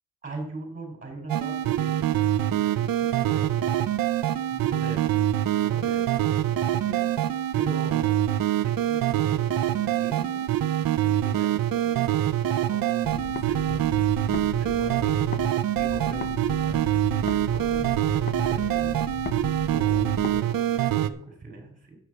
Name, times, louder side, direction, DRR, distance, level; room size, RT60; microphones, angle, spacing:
voice 1, 0.2-3.7 4.5-7.1 7.5-10.4 11.0-12.1 12.6-15.3 15.7-18.9 19.7-22.0, right 2 dB, 20° right, 2 dB, 3.8 m, -41 dB
sound 1, 1.3-21.1, right 12 dB, 70° right, 0.7 m, -25 dB
sound 2, 13.0-15.5 15.8-20.4, left 6 dB, 30° left, 0.7 m, -37 dB
9.6 x 8.1 x 6.0 m, 0.65 s
cardioid pair, 110°, 35 cm